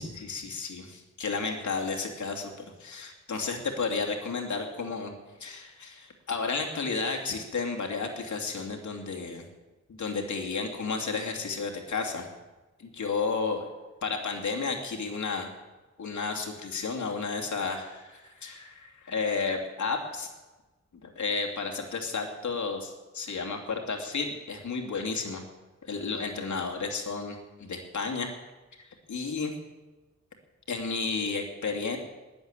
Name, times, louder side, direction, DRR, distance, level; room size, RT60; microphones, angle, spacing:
voice 1, 0.0-2.5 2.8-5.1 5.4-9.4 9.9-12.3 12.8-13.7 14.0-15.5 16.0-20.3 21.0-25.4 25.9-28.3 29.1-29.5 30.7-32.0, left 4 dB, 80° left, 2 dB, 2.8 m, -32 dB
20.5 x 7.9 x 8.9 m, 1.2 s
wide cardioid pair, 145°, 29 cm